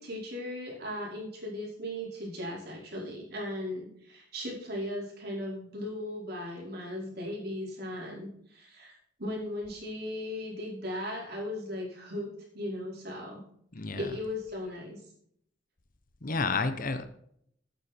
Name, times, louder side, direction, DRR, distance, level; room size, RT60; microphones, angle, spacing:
voice 1, 0.0-13.4 14.0-15.0, left 1 dB, 55° right, -3 dB, 5.0 m, -37 dB
voice 2, 13.7-14.2 16.2-17.1, left 3 dB, 45° left, 11 dB, 0.9 m, -31 dB
12.0 x 9.3 x 4.5 m, 0.69 s
head